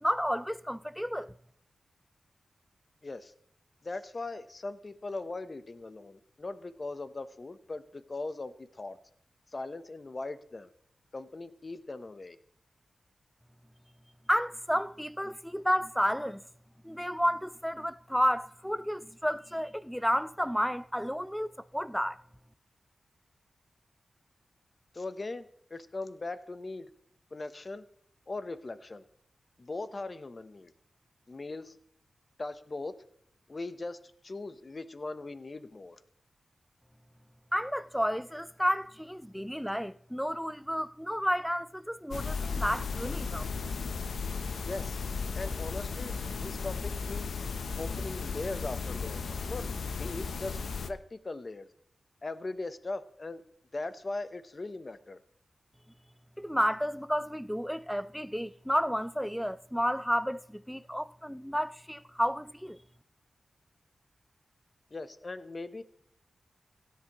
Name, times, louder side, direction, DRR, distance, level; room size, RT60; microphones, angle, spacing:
voice 1, 0.0-1.3 14.3-16.4 16.8-22.2 37.5-43.5 56.4-62.8, equal, ahead, 0.5 m, -31 dB
voice 2, 3.0-3.3 3.8-9.0 9.5-10.7 11.1-12.4 24.9-26.9 27.3-27.9 28.3-29.0 29.6-30.7 31.3-31.7 32.4-32.9 33.5-36.0 44.6-45.0 45.3-47.3 47.8-49.7 50.0-51.7 52.2-53.4 53.7-55.2 64.9-65.8, left 2 dB, 40° left, 0.9 m, -39 dB
sound 1, 42.1-50.9, left 5 dB, 85° left, 0.7 m, -35 dB
16.5 x 10.5 x 3.0 m
wide cardioid pair, 80°, 0 cm